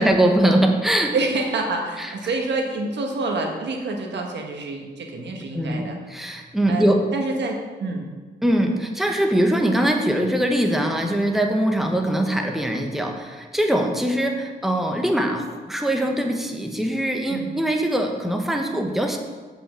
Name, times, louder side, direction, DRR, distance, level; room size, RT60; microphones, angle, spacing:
voice 1, 0.0-1.1 2.0-2.1 5.5-7.1 8.4-19.2, right 1 dB, ahead, 3 dB, 1.1 m, -22 dB
voice 2, 1.1-6.0 6.7-8.1 17.3-17.5, right 3 dB, 85° right, 2 dB, 1.4 m, -27 dB
7.6 x 5.7 x 7.4 m, 1.4 s
cardioid pair, 90°, 18 cm